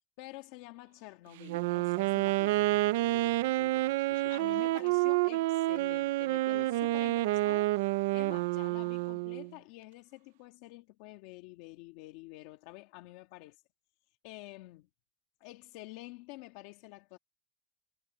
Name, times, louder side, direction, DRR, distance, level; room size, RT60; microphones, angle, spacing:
voice 1, 0.2-2.8 4.3-7.8 8.1-13.6 14.2-14.9 15.4-17.2, left 20 dB, 55° left, 1.9 m, -49 dB
Wind instrument woodwind instrument, 1.4-9.5, right 19 dB, 75° right, 0.6 m, -29 dB
voice 2, 2.5-4.7 6.5-7.1, left 20 dB, 75° left, 3.2 m, -53 dB
supercardioid pair, 165°, 0 cm